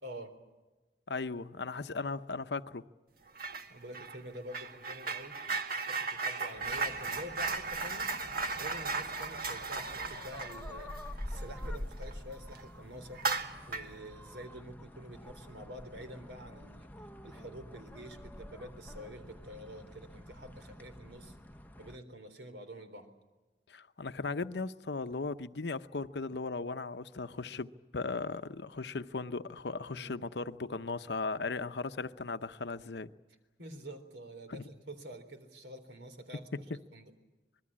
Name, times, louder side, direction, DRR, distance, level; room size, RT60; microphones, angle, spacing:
voice 1, 0.0-0.3 3.7-5.4 5.7-8.1 8.5-10.9 11.3-13.2 13.7-21.4 21.8-23.1 29.9-30.1 33.6-36.4 36.9-37.1, equal, 75° right, 3.7 m, -47 dB
voice 2, 1.1-2.8 23.7-33.1 34.5-34.6, left 3 dB, 70° left, 0.8 m, -37 dB
sound 1, 3.4-3.7 3.9-12.1 12.5-12.6 13.1-14.0, right 4 dB, 55° right, 1.8 m, -36 dB
sound 2, 6.6-22.0, left 1 dB, 10° left, 0.8 m, -47 dB
26.5 x 21.0 x 8.7 m
head